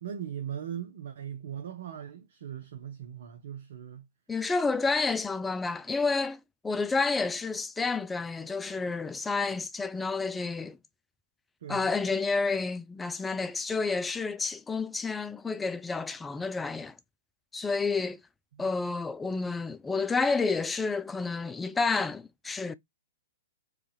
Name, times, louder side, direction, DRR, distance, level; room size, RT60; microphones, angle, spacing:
voice 1, 0.0-4.1 11.6-11.9 18.6-18.7, right 9 dB, 60° right, 0.7 m, -39 dB
voice 2, 4.3-10.8 11.7-17.0 17.5-18.2 18.6-22.7, left 4 dB, 10° left, 0.4 m, -30 dB
4.8 x 2.4 x 3.1 m
figure-of-eight pair, 110°, 0 cm